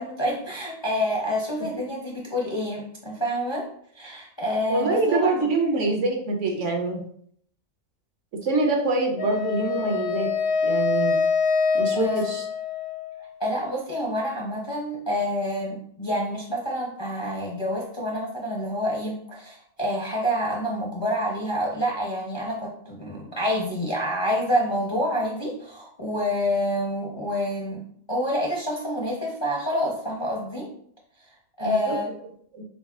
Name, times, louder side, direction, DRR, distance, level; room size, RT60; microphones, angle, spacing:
voice 1, 0.0-3.7 4.0-5.3 11.9-12.2 13.4-27.8 28.1-30.7 31.6-32.1, equal, 30° left, -2 dB, 0.5 m, -27 dB
voice 2, 4.7-7.0 8.3-10.3 10.6-11.2 11.7-12.5 31.6-32.0 32.5-32.6, right 3 dB, 65° right, 2 dB, 1.0 m, -25 dB
Wind instrument woodwind instrument, 9.2-13.3, left 5 dB, 65° left, 1.1 m, -25 dB
4.1 x 4.0 x 2.4 m, 0.63 s
omnidirectional pair, 1.4 m